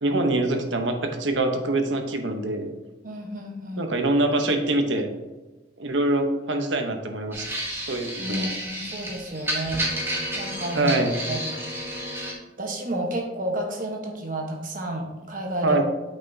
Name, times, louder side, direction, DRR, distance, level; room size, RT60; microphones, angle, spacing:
voice 1, 0.0-2.7 3.8-5.1 5.8-7.5 7.9-8.5 10.7-11.1 15.6-15.8, right 2 dB, 85° right, 5 dB, 1.0 m, -24 dB
voice 2, 3.0-3.9 8.2-9.9 10.3-10.9 11.3-11.4 12.6-15.8, right 1 dB, 45° right, 2 dB, 1.1 m, -31 dB
sound 1, 7.3-12.3, equal, 15° right, 1.2 m, -31 dB
8.4 x 5.8 x 2.8 m, 1.1 s
head